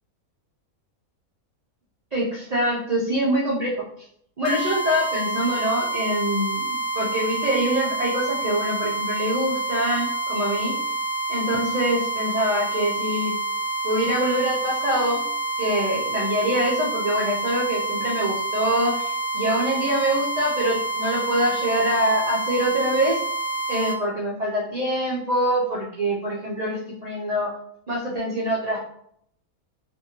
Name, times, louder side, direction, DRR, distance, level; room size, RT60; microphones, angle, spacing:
voice 1, 2.1-3.7 4.4-6.7 6.9-10.7 11.3-13.3 13.8-15.2 15.6-23.2 23.7-27.5 27.9-28.8, equal, 75° right, -5 dB, 0.3 m, -24 dB
sound 1, 4.5-24.0, right 3 dB, 85° left, 1.1 m, -28 dB
2.6 x 2.5 x 2.8 m, 0.68 s
omnidirectional pair, 1.5 m